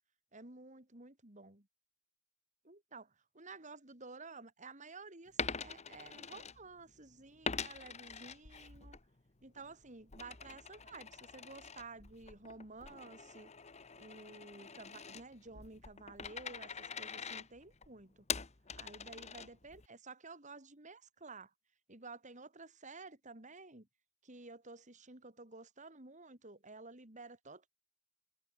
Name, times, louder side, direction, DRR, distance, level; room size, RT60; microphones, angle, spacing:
voice 1, 0.3-1.7 2.6-9.0 9.4-13.5 14.0-18.3 18.8-21.5 21.9-23.9 24.2-27.7, right 3 dB, 40° right, 3.5 m, -52 dB
Coin (dropping), 5.3-7.0 7.4-9.0 9.4-19.9, left 6 dB, 35° left, 1.4 m, -44 dB
head